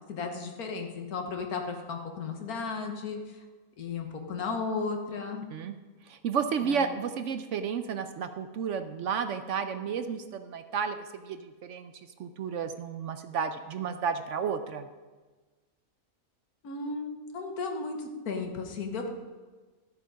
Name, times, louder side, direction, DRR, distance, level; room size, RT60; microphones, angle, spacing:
voice 1, 0.1-3.5 3.8-5.5 6.6-6.9 16.6-19.1, left 4 dB, 85° left, 3 dB, 1.7 m, -35 dB
voice 2, 6.1-11.9 12.2-14.9, right 6 dB, 65° right, 9 dB, 0.8 m, -32 dB
13.0 x 7.5 x 5.2 m, 1.3 s
omnidirectional pair, 1.5 m